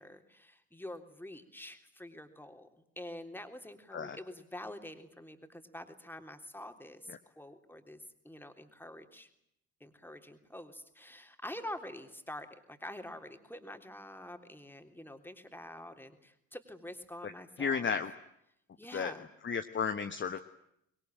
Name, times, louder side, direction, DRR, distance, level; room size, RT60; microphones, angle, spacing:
voice 1, 0.0-9.3 9.8-17.9 18.8-19.3 20.3-20.4, left 1 dB, 5° left, 7 dB, 3.5 m, -47 dB
voice 2, 17.6-18.1 18.9-19.1 19.4-20.4, left 6 dB, 30° left, 8 dB, 1.3 m, -33 dB
24.5 x 22.0 x 8.9 m, 0.77 s
figure-of-eight pair, 45°, 41 cm